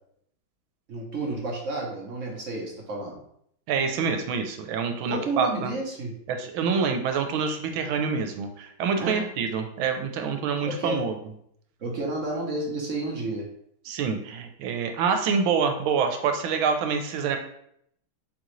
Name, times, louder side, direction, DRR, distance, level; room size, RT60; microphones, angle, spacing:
voice 1, 0.9-3.2 5.1-6.1 9.0-9.3 10.6-11.0 11.8-13.4, right 2 dB, 55° right, -1 dB, 0.9 m, -31 dB
voice 2, 3.7-5.7 6.3-11.2 13.9-17.4, right 5 dB, 85° right, 6 dB, 1.4 m, -26 dB
4.2 x 3.8 x 3.1 m, 0.71 s
omnidirectional pair, 2.2 m